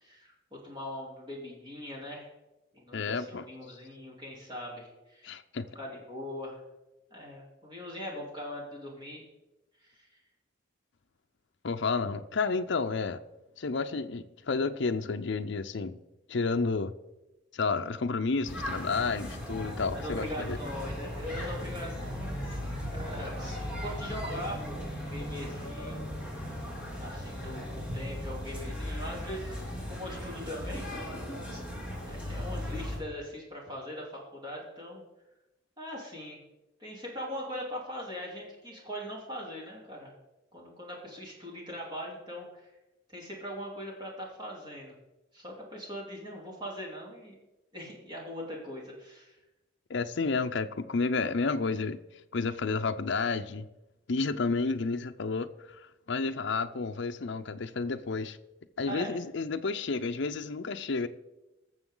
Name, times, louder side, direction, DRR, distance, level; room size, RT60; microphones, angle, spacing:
voice 1, 0.0-2.3 2.7-5.3 5.7-6.6 7.1-9.2 9.8-10.2 19.6-26.0 27.0-31.1 31.5-31.6 32.1-35.0 35.8-36.4 36.8-40.1 40.5-42.7 43.1-44.9 45.3-47.3 47.7-49.4 58.9-59.2, equal, 25° right, 3.3 m, -41 dB
voice 2, 2.9-3.4 5.2-5.7 11.6-13.2 13.6-16.0 16.3-16.9 17.5-20.6 49.9-52.0 52.3-53.7 54.1-55.8 56.1-58.4 58.8-61.1, left 4 dB, 60° left, 0.5 m, -31 dB
sound 1, 18.4-33.0, left 1 dB, 5° right, 3.2 m, -37 dB
Drum, 27.9-30.8, equal, 65° right, 2.8 m, -48 dB
19.5 x 7.1 x 3.8 m
head